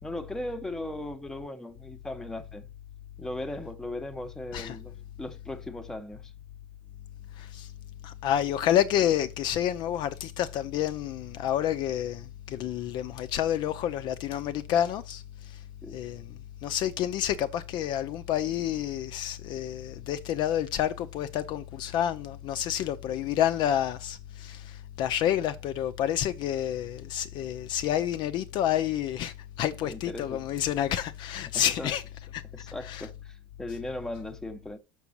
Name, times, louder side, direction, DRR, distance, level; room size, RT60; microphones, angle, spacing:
voice 1, 0.0-2.7 3.2-6.3 15.8-16.0 29.8-30.4 31.5-31.9 32.5-34.8, left 1 dB, 5° left, 0.8 m, -38 dB
voice 2, 7.4-7.7 8.0-15.2 15.9-16.2 16.6-32.0 32.3-32.4 32.9-33.0, left 11 dB, 45° left, 0.5 m, -29 dB
6.1 x 5.9 x 5.5 m
cardioid pair, 150°, 11 cm